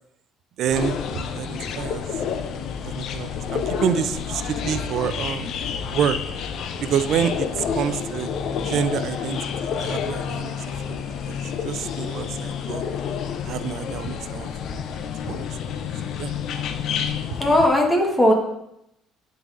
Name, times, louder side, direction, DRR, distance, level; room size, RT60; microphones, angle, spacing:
voice 1, 0.6-2.1 2.8-5.5 5.9-6.2 6.8-8.3 8.6-10.5 10.9-12.8 13.4-15.8 16.1-16.3 17.3-17.4, right 8 dB, 60° right, 12 dB, 0.4 m, -28 dB
sound 1, 0.7-17.7, left 7 dB, 65° left, 0.4 m, -29 dB
voice 2, 17.4-18.3, left 1 dB, 10° left, 1 dB, 1.3 m, -17 dB
9.9 x 3.9 x 2.5 m, 0.81 s
cardioid pair, 100°, 0 cm